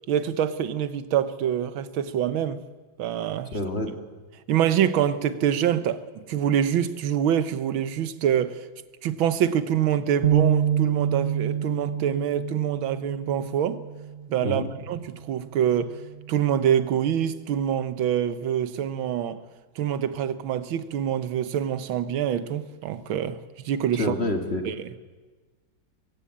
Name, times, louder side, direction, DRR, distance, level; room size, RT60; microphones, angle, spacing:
voice 1, 0.1-2.6 3.0-3.6 4.5-8.7 9.0-13.8 14.3-16.0 16.3-19.4 19.8-24.1 24.7-25.0, right 9 dB, 90° right, 1.7 m, -25 dB
voice 2, 3.5-4.0 14.4-14.7 23.9-24.7, left 1 dB, 35° left, 2.1 m, -27 dB
sound 1, 10.2-14.5 15.0-15.2 16.0-16.5, right 9 dB, 40° right, 1.2 m, -27 dB
23.0 x 16.0 x 8.6 m
omnidirectional pair, 2.1 m